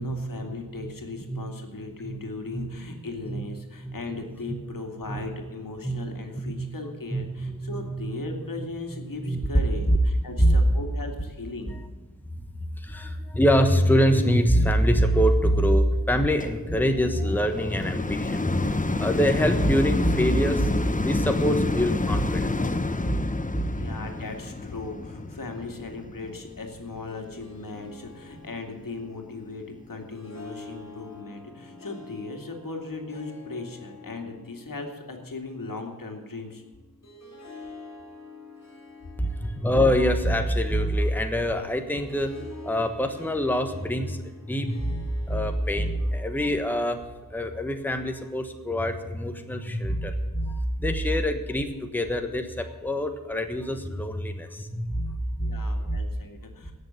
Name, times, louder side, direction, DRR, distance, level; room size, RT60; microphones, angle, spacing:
voice 1, 0.0-11.8 23.7-36.6 55.4-56.7, left 3 dB, 70° left, 4 dB, 2.4 m, -38 dB
voice 2, 7.1-8.1 9.2-9.4 9.9-10.0 10.4-10.6 12.8-22.8 23.0-23.7 39.2-42.3 42.6-47.0 47.3-56.0, equal, 5° left, 6 dB, 1.3 m, -25 dB
sound 1, 16.4-27.7 28.3-28.4, left 2 dB, 20° left, 0.9 m, -29 dB
Harp, 27.1-46.7, left 3 dB, 50° left, 3.8 m, -47 dB
16.5 x 6.8 x 8.3 m, 1.3 s
wide cardioid pair, 60°, 35 cm